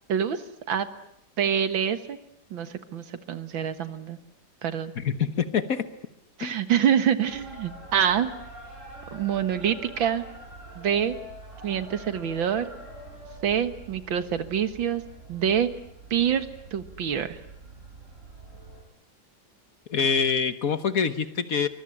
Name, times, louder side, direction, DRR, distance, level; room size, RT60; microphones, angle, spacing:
voice 1, 0.1-0.9 1.4-2.2 2.5-4.2 4.6-4.9 6.4-8.3 9.1-10.3 10.8-11.2 11.6-12.7 13.4-15.0 15.3-15.7 16.1-16.5 16.7-17.4, right 8 dB, 85° right, 11 dB, 2.3 m, -26 dB
voice 2, 4.9-5.9 6.4-6.6 19.9-21.7, left 6 dB, 50° left, 12 dB, 1.5 m, -25 dB
sound 1, 7.2-18.8, right 1 dB, 40° right, 8.5 m, -45 dB
24.0 x 22.5 x 10.0 m, 0.75 s
omnidirectional pair, 2.1 m